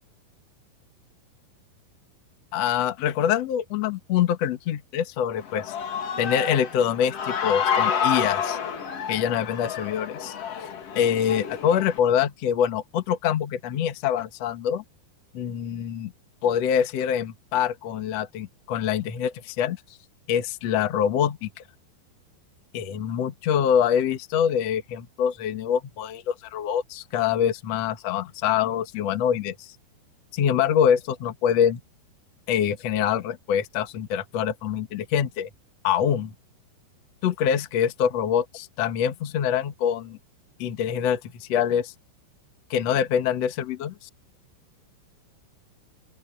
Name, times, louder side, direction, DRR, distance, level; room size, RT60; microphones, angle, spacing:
voice 1, 2.5-5.7 6.2-8.6 9.1-10.3 10.9-14.8 15.3-16.1 16.4-19.8 20.3-21.5 22.7-29.7 30.3-31.8 32.5-35.5 35.8-36.3 37.2-40.2 40.6-41.9 42.7-44.1, left 9 dB, 85° left, 1.4 m, -25 dB
Human voice / Cheering, 5.4-12.0, left 7 dB, 50° left, 1.9 m, -29 dB
open air
omnidirectional pair, 5.8 m